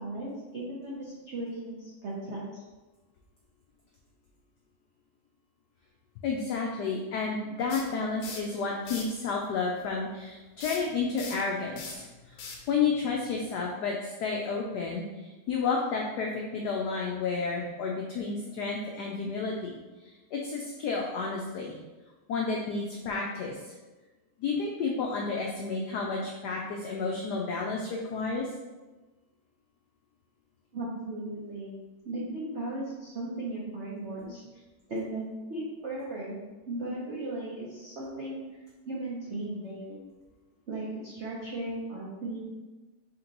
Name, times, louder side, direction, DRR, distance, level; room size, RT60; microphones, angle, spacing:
voice 1, 0.0-2.6 30.7-31.7 32.0-34.4 34.9-36.4 36.7-38.4 38.9-40.0 40.7-42.4, right 2 dB, 80° right, -6 dB, 0.6 m, -36 dB
voice 2, 6.2-12.1 12.7-19.8 20.0-21.8 22.3-23.7 24.4-28.5, left 4 dB, 85° left, -1 dB, 0.9 m, -31 dB
sound 1, 7.7-8.5 8.8-9.2 10.6-13.6, left 4 dB, 70° left, 1.3 m, -42 dB
4.3 x 2.9 x 3.9 m, 1.2 s
omnidirectional pair, 2.3 m